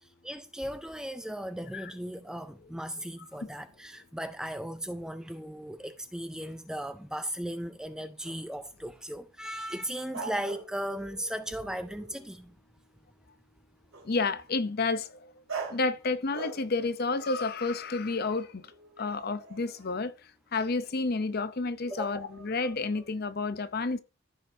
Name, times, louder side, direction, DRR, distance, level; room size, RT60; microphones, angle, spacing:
voice 1, 0.0-12.5 21.9-22.3, equal, 5° right, 0.4 m, -37 dB
sound 1, 8.2-8.4 10.1-12.4 13.9-14.1 15.5-15.9 16.3-16.9 17.2-20.0 20.9-21.1 21.8-23.0, right 4 dB, 75° right, 2.7 m, -44 dB
voice 2, 14.1-15.1 15.7-18.6 19.0-20.1 20.5-24.0, left 3 dB, 45° left, 0.6 m, -30 dB
14.5 x 5.0 x 2.7 m
head